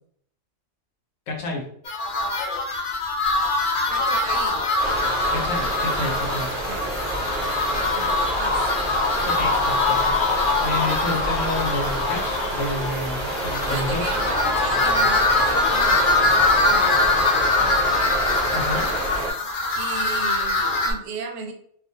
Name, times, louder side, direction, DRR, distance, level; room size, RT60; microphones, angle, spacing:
voice 1, 1.3-1.6 5.3-6.5 9.2-10.2 10.6-14.0 18.5-18.8, left 2 dB, 70° left, 0 dB, 1.0 m, -29 dB
sound 1, 1.9-20.9, left 3 dB, 90° left, 0.4 m, -23 dB
voice 2, 3.9-4.6 5.8-6.1 6.7-6.9 7.7-8.7 13.7-17.3 17.6-18.1 18.5-19.0 19.4-21.5, right 4 dB, 75° right, 3 dB, 0.9 m, -35 dB
sound 2, 4.8-19.3, right 2 dB, 40° right, 0.5 m, -29 dB
2.5 x 2.1 x 2.6 m, 0.62 s
omnidirectional pair, 1.4 m